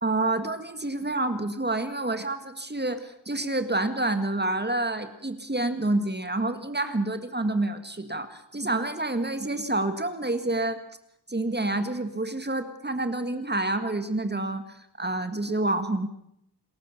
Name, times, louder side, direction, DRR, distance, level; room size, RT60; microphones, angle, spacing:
voice 1, 0.0-10.8 11.3-16.1, right 2 dB, 25° right, 9 dB, 1.9 m, -28 dB
27.0 x 14.0 x 7.2 m, 0.75 s
wide cardioid pair, 75°, 40 cm